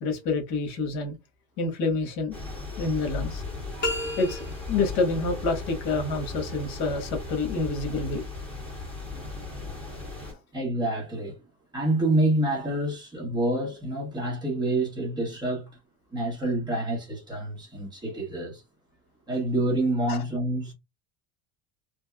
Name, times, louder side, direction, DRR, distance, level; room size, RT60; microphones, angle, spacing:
voice 1, 0.0-1.2 1.6-2.4 2.8-3.4 4.2-8.2 20.1-20.2, left 3 dB, 60° left, 1.3 m, -28 dB
sound 1, 2.3-10.3, left 3 dB, 5° left, 1.9 m, -36 dB
sound 2, 3.8-4.9, left 2 dB, 30° left, 1.2 m, -31 dB
voice 2, 10.5-11.4 11.7-15.8 16.1-18.6 19.3-20.7, right 1 dB, 10° right, 1.2 m, -27 dB
3.4 x 2.7 x 2.3 m
cardioid pair, 155°, 36 cm